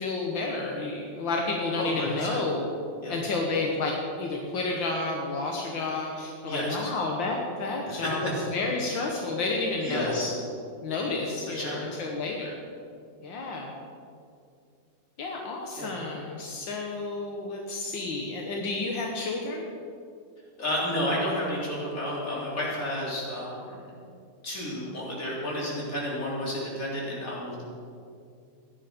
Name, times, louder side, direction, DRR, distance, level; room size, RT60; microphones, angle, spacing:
voice 1, 0.0-2.7 3.1-10.3 10.8-12.6 13.2-13.7 15.2-19.7, left 3 dB, 80° left, 0 dB, 1.9 m, -31 dB
voice 2, 1.8-2.3 3.0-3.2 6.5-6.9 7.9-8.3 9.8-10.3 11.5-11.8 15.7-16.0 20.6-23.8 24.4-27.6, left 1 dB, 45° left, -5 dB, 3.9 m, -31 dB
16.0 x 10.5 x 5.2 m, 2.4 s
omnidirectional pair, 2.0 m